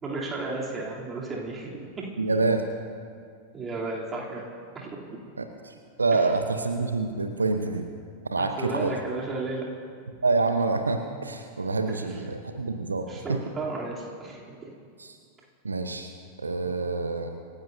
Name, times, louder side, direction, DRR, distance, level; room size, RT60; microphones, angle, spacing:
voice 1, 0.0-2.1 3.5-4.4 4.7-5.2 8.4-9.7 13.1-14.7, right 3 dB, 20° right, -3 dB, 3.2 m, -34 dB
voice 2, 2.2-2.6 5.4-7.9 8.3-9.0 10.2-13.4 15.0-15.2 15.6-16.1 16.4-17.3, right 3 dB, 75° right, 6 dB, 0.8 m, -27 dB
27.0 x 15.0 x 2.7 m, 2.2 s
figure-of-eight pair, 90°, 0 cm